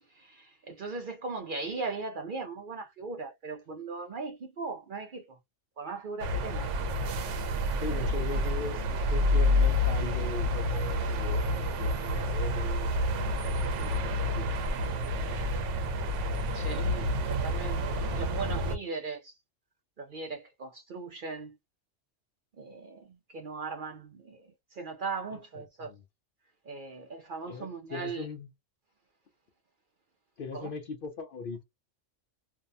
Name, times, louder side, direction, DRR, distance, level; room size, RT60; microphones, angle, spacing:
voice 1, 0.7-5.2 5.8-6.7 16.5-19.2 20.1-21.5 22.6-23.0 23.3-24.1 24.8-25.9 26.7-28.2, right 4 dB, 55° right, 0.6 m, -38 dB
sound 1, 6.2-18.8, left 1 dB, 70° right, 1.0 m, -29 dB
voice 2, 7.7-15.9 25.3-26.0 27.4-28.5 30.4-31.6, left 5 dB, 60° left, 0.6 m, -40 dB
2.6 x 2.1 x 2.5 m
omnidirectional pair, 1.3 m